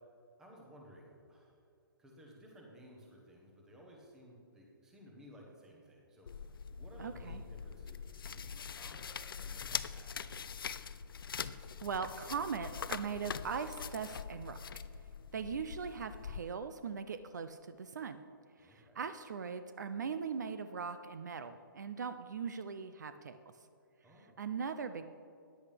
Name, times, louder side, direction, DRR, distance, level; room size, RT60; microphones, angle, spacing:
voice 1, 0.4-1.7 2.0-10.8 18.6-19.0 24.0-24.4, equal, 5° right, -1 dB, 1.0 m, -57 dB
sound 1, 6.3-16.4, left 6 dB, 75° left, 0.5 m, -43 dB
voice 2, 7.0-7.4 11.8-14.6 15.3-18.2 18.6-23.4 24.4-25.1, right 6 dB, 55° right, 10 dB, 0.5 m, -40 dB
14.0 x 10.0 x 3.4 m, 2.4 s
hypercardioid pair, 175°, 12 cm